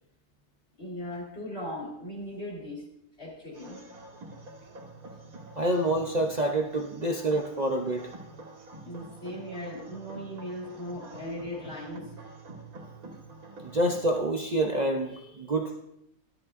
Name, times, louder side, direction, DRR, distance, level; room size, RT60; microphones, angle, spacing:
voice 1, 0.8-2.9 3.2-3.8 8.8-12.1 15.1-15.3, left 1 dB, 40° left, -3 dB, 3.0 m, -38 dB
sound 1, 3.5-14.2, right 2 dB, 65° right, 2.1 m, -47 dB
voice 2, 5.6-8.1 13.6-15.8, right 1 dB, 50° right, 3 dB, 0.5 m, -27 dB
13.5 x 12.5 x 2.5 m, 0.78 s
omnidirectional pair, 1.7 m